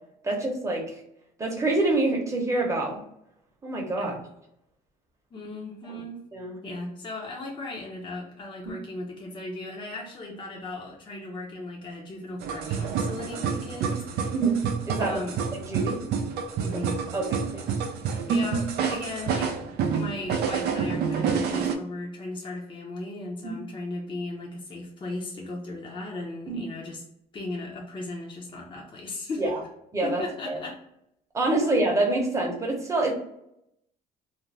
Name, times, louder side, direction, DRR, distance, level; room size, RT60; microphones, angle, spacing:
voice 1, 0.2-1.0 1.4-3.0 3.6-4.2 5.9-6.0 6.3-6.6 14.3-14.6 14.9-15.2 15.7-16.0 16.7-16.8 17.1-17.3 17.5-17.6 23.4-23.6 26.5-26.6 29.4-29.6 29.9-30.6 31.3-33.1, right 2 dB, 15° right, -1 dB, 0.8 m, -26 dB
voice 2, 5.3-6.2 6.6-14.3 15.0-15.4 16.6-17.0 18.3-27.0 27.3-29.6 30.0-30.8, left 2 dB, 30° left, -2 dB, 0.7 m, -37 dB
sound 1, 12.4-21.7, right 6 dB, 75° right, 0.4 m, -28 dB
2.5 x 2.1 x 3.2 m, 0.78 s
cardioid pair, 110°, 17 cm